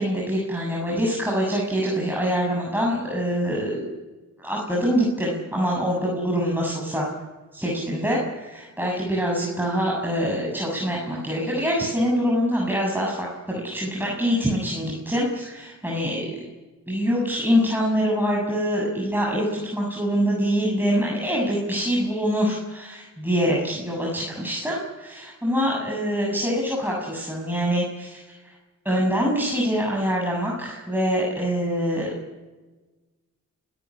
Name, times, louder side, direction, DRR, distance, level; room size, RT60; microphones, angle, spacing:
voice 1, 0.0-3.9 4.4-7.1 7.5-16.4 16.9-28.5 28.8-32.1, equal, 5° right, -3 dB, 7.4 m, -25 dB
29.0 x 14.0 x 9.9 m, 1.3 s
supercardioid pair, 50°, 33 cm